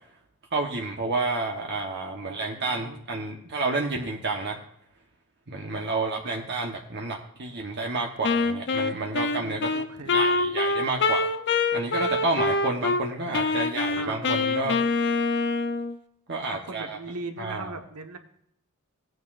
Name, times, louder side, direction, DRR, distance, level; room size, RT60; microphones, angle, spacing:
voice 1, 0.5-4.6 5.5-9.7 10.1-11.3 11.7-14.8 16.3-17.0 17.4-17.7, right 3 dB, 50° right, 1 dB, 1.2 m, -30 dB
voice 2, 2.2-3.4 9.4-10.4 14.0-14.4 16.5-18.2, right 3 dB, 85° right, 6 dB, 1.4 m, -40 dB
Wind instrument woodwind instrument, 8.2-13.0 13.3-16.0, left 3 dB, 50° left, 0.8 m, -25 dB
18.0 x 9.3 x 2.6 m, 0.70 s
head